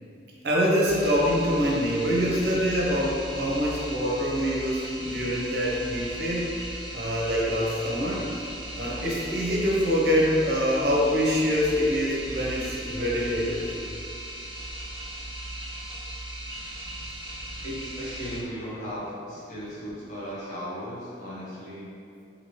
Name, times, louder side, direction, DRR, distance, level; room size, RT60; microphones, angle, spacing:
voice 1, 0.4-6.6 6.9-8.3 8.7-13.8, equal, 60° right, -4 dB, 0.6 m, -25 dB
sound 1, 0.8-18.4, right 1 dB, 15° right, 0.8 m, -37 dB
voice 2, 17.6-21.9, equal, 45° left, -7 dB, 0.7 m, -36 dB
2.9 x 2.7 x 2.9 m, 2.5 s
head